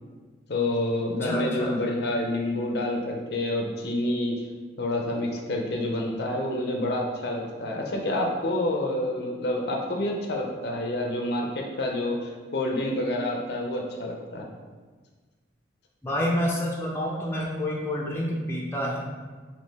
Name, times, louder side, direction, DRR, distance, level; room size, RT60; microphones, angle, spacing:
voice 1, 0.5-4.5 4.8-14.5, left 1 dB, 60° left, 0 dB, 0.5 m, -28 dB
voice 2, 1.2-1.8 16.0-19.0, equal, 15° left, -4 dB, 0.5 m, -28 dB
3.5 x 2.7 x 4.1 m, 1.4 s
head